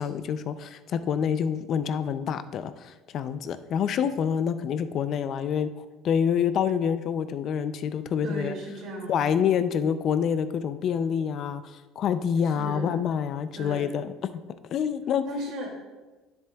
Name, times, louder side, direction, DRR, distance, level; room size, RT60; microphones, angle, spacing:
voice 1, 0.0-8.5 9.1-14.1 14.7-15.2, left 7 dB, 45° left, 12 dB, 0.3 m, -27 dB
voice 2, 8.2-9.5 12.4-13.1 13.5-13.9 15.3-15.7, right 1 dB, 60° right, 0 dB, 2.3 m, -36 dB
10.5 x 6.9 x 2.3 m, 1.2 s
cardioid pair, 135°, 0 cm